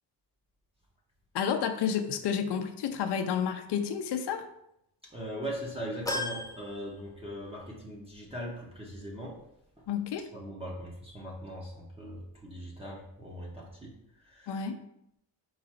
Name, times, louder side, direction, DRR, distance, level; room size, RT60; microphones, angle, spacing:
voice 1, 1.3-4.5 9.9-10.3 14.5-14.8, left 7 dB, 70° left, 7 dB, 0.5 m, -30 dB
voice 2, 5.0-9.4 10.3-14.6, equal, 15° right, -4 dB, 0.7 m, -40 dB
sound 1, 6.1-7.7 8.1-8.2 9.4-9.5, left 2 dB, 10° left, 0.3 m, -37 dB
4.7 x 2.5 x 4.2 m, 0.78 s
wide cardioid pair, 160°, 42 cm